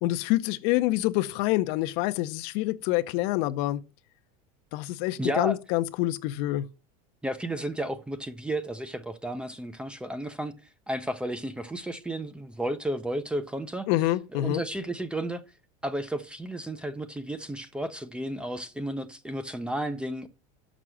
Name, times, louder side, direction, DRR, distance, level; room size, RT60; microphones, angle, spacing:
voice 1, 0.0-3.8 4.7-6.7 13.9-14.6, left 17 dB, 55° left, 0.6 m, -26 dB
voice 2, 5.2-5.6 7.2-10.5 10.9-13.9 14.3-15.4 15.8-20.3, right 1 dB, 5° right, 0.5 m, -32 dB
6.7 x 6.1 x 6.2 m
supercardioid pair, 150°, 18 cm